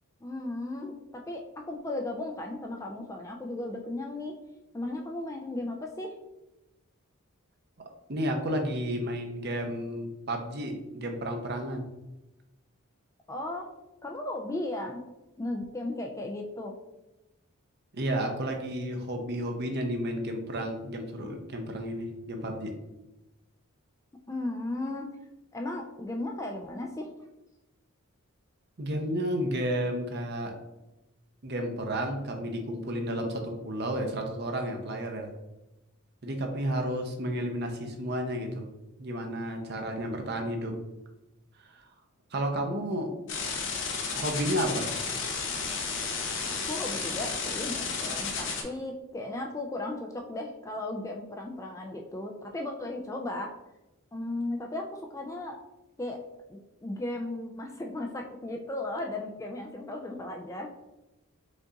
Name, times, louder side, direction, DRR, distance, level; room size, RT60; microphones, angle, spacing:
voice 1, 0.2-4.4 4.7-6.1 13.3-15.0 15.4-16.7 24.3-25.1 25.5-27.1 46.6-53.5 54.1-55.6 56.0-56.2 56.5-60.7, left 2 dB, 15° left, 2 dB, 0.3 m, -36 dB
voice 2, 8.1-11.9 17.9-22.7 28.8-30.5 31.4-35.3 36.2-38.7 39.0-40.8 41.6-41.9 42.3-43.1 44.1-44.9, right 1 dB, 45° right, 3 dB, 0.7 m, -32 dB
sound 1, 43.3-48.6, left 5 dB, 55° left, 0.8 m, -32 dB
5.2 x 2.5 x 3.8 m, 0.98 s
head